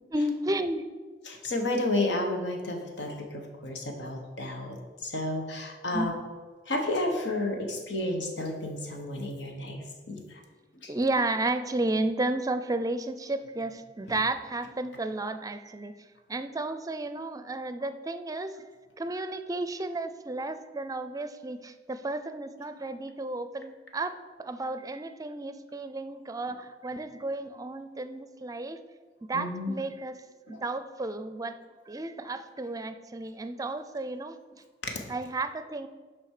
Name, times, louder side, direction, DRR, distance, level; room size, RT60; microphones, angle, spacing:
voice 1, 0.1-0.9 5.9-6.1 10.9-15.9 16.3-18.5 19.0-28.8 29.3-31.6 31.9-34.4 35.1-35.9, right 2 dB, 20° right, 11 dB, 0.5 m, -32 dB
voice 2, 1.3-4.8 5.0-6.1 6.7-9.8 10.1-10.2 10.8-10.9 29.3-29.7 30.5-30.6 34.8-34.9, left 2 dB, 90° left, 3 dB, 1.3 m, -31 dB
7.5 x 5.2 x 6.6 m, 1.4 s
head